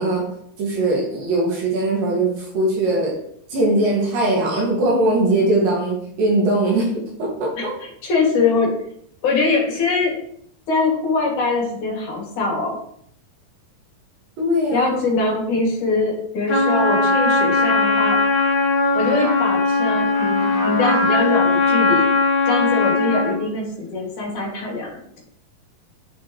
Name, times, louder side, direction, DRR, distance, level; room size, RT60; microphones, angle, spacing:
voice 1, 0.0-3.2 3.5-7.8 14.4-15.0, right 2 dB, 75° right, -2 dB, 3.8 m, -20 dB
voice 2, 7.6-8.7 9.2-10.2 10.7-12.8 14.7-18.2 19.0-22.1 22.5-24.9, left 3 dB, 60° left, -2 dB, 3.5 m, -22 dB
Trumpet, 16.5-23.4, left 3 dB, 40° left, 3.1 m, -19 dB
10.5 x 6.0 x 3.1 m, 0.68 s
omnidirectional pair, 4.1 m